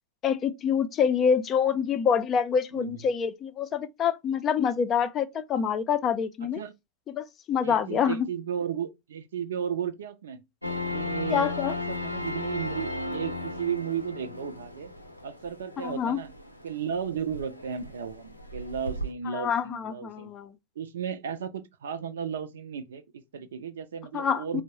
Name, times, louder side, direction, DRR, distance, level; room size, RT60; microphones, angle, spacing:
voice 1, 0.2-6.6 7.1-8.3 11.3-11.7 15.8-16.2 19.3-20.5 24.1-24.6, left 7 dB, 30° left, 0.4 m, -26 dB
voice 2, 7.6-10.4 10.9-14.9 15.2-16.3 16.6-20.3 20.8-24.6, right 7 dB, 65° right, 0.5 m, -34 dB
sound 1, 10.6-19.1, left 2 dB, 85° left, 0.6 m, -36 dB
4.3 x 2.0 x 2.9 m
figure-of-eight pair, 90°, 0 cm